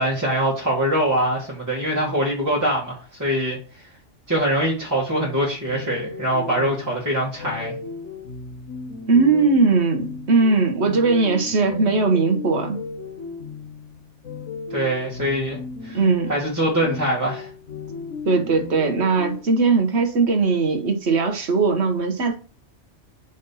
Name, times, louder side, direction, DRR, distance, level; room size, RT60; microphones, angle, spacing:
voice 1, 0.0-3.6 4.3-7.7 14.7-16.0 16.3-17.5, right 1 dB, 15° right, 1.9 m, -23 dB
sound 1, 5.7-19.4, left 5 dB, 85° left, 1.3 m, -36 dB
voice 2, 9.1-12.8 15.9-16.3 18.2-22.4, right 4 dB, 65° right, 1.4 m, -19 dB
5.1 x 4.0 x 5.5 m
omnidirectional pair, 1.2 m